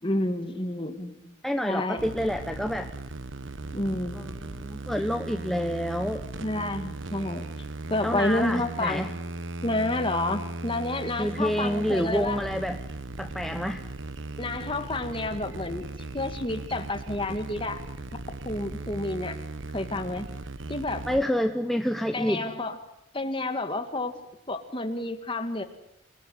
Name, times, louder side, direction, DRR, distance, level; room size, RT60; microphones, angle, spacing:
voice 1, 0.0-1.3 1.7-2.1 3.7-4.3 6.4-7.5 7.9-9.1 9.6-12.4 14.4-17.8 18.4-19.4 19.7-20.3 20.7-21.0 22.1-22.8 23.1-24.1 24.5-25.6, left 2 dB, 25° left, 7 dB, 2.1 m, -30 dB
voice 2, 1.4-2.9 4.1-6.2 8.0-9.1 11.2-12.8 13.2-13.8 21.1-22.4, equal, ahead, 6 dB, 0.9 m, -28 dB
sound 1, 2.0-21.2, right 2 dB, 70° right, 1.1 m, -38 dB
27.5 x 19.0 x 9.5 m, 0.81 s
head